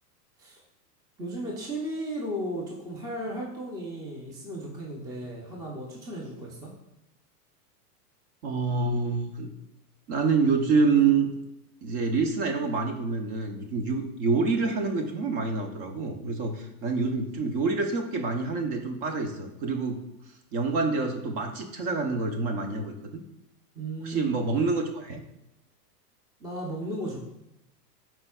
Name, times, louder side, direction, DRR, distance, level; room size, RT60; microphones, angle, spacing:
voice 1, 1.2-6.7 23.7-24.3 26.4-27.2, right 1 dB, 10° right, -2 dB, 0.6 m, -35 dB
voice 2, 8.4-9.5 10.1-11.3 11.8-20.0 20.5-23.2 24.0-25.2, right 4 dB, 40° right, 5 dB, 0.9 m, -27 dB
11.5 x 4.5 x 2.3 m, 0.84 s
supercardioid pair, 145°, 48 cm